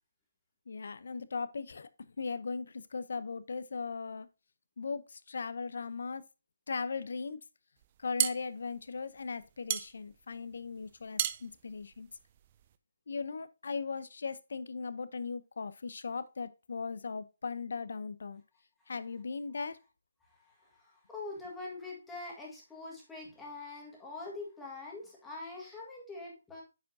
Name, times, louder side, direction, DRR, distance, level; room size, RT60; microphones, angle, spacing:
voice 1, 0.7-1.9 2.2-4.3 4.8-6.2 6.7-7.4 8.0-12.1 13.1-18.4 18.9-19.8, left 4 dB, 65° left, 0.7 m, -38 dB
sound 1, 7.8-12.8, right 11 dB, 25° right, 0.4 m, -36 dB
voice 2, 20.4-26.6, left 3 dB, 5° left, 1.6 m, -44 dB
9.3 x 5.0 x 2.7 m
hypercardioid pair, 170°, 0 cm